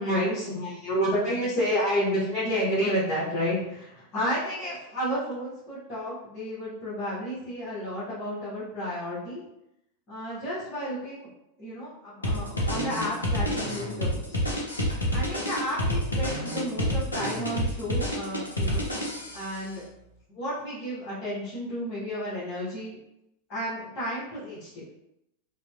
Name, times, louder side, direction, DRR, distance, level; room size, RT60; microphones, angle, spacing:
voice 1, 0.0-9.4 10.1-11.3 11.6-14.4 15.1-18.8 19.3-19.8 20.3-23.0 23.5-24.8, equal, 30° left, -11 dB, 1.1 m, -31 dB
sound 1, 12.2-19.5, equal, 80° left, 0.5 m, -28 dB
2.7 x 2.1 x 2.3 m, 0.84 s
figure-of-eight pair, 90°, 0 cm